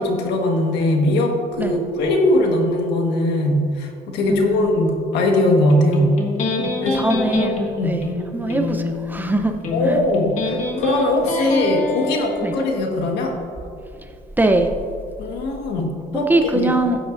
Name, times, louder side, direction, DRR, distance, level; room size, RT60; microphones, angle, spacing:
voice 1, 0.0-6.2 6.8-7.2 7.8-8.0 9.7-13.3 15.2-16.7, left 1 dB, 85° left, 2 dB, 1.5 m, -20 dB
voice 2, 4.3-4.8 6.6-7.6 7.8-9.6 9.8-10.0 12.4-12.6 14.4-14.7 16.3-17.0, right 2 dB, 10° right, 5 dB, 0.7 m, -22 dB
Electric guitar, 5.7-12.7, left 3 dB, 45° left, 1.8 m, -26 dB
14.5 x 8.7 x 2.6 m, 2.4 s
cardioid pair, 110°, 17 cm